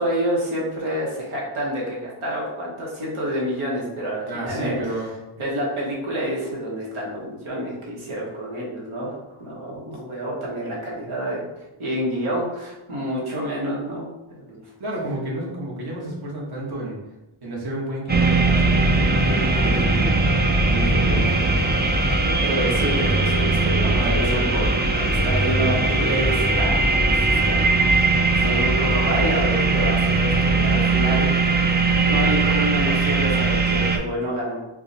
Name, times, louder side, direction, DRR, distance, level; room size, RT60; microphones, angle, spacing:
voice 1, 0.0-4.8 5.4-11.4 11.8-14.7 22.2-28.1 28.4-31.3 32.1-34.6, equal, 85° right, -4 dB, 0.9 m, -28 dB
voice 2, 4.3-5.1 14.8-17.0 17.4-20.2 20.7-21.8 23.8-24.7, right 1 dB, 50° right, -4 dB, 1.0 m, -30 dB
sound 1, 18.1-34.0, right 3 dB, 25° right, 0.3 m, -20 dB
4.6 x 2.0 x 2.7 m, 0.98 s
wide cardioid pair, 65°, 48 cm